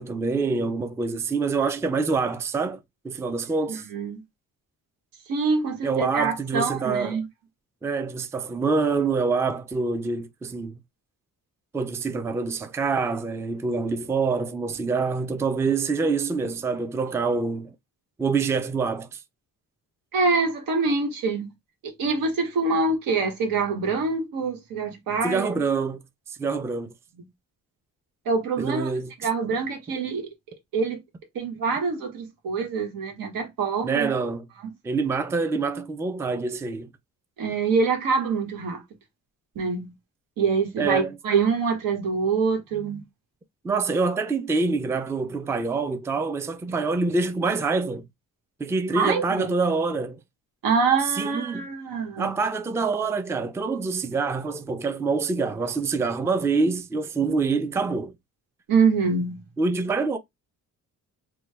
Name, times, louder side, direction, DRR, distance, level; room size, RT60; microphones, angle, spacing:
voice 1, 0.0-3.9 5.8-7.2 7.8-10.8 11.7-17.7 18.2-19.2 25.2-26.0 26.3-26.9 28.6-29.1 33.8-34.5 34.8-36.9 40.8-41.2 43.6-48.0 48.6-50.2 51.1-51.7 52.2-58.1 59.6-60.2, right 4 dB, 10° right, 0.3 m, -26 dB
voice 2, 3.7-4.2 5.3-7.2 20.1-21.5 21.8-25.5 28.2-28.9 29.2-30.3 30.7-31.0 31.3-34.1 37.4-38.8 39.5-39.9 40.4-43.0 48.9-49.5 50.6-52.3 58.7-59.4, right 4 dB, 85° right, 1.2 m, -25 dB
3.1 x 2.2 x 3.3 m
cardioid pair, 115°, 33 cm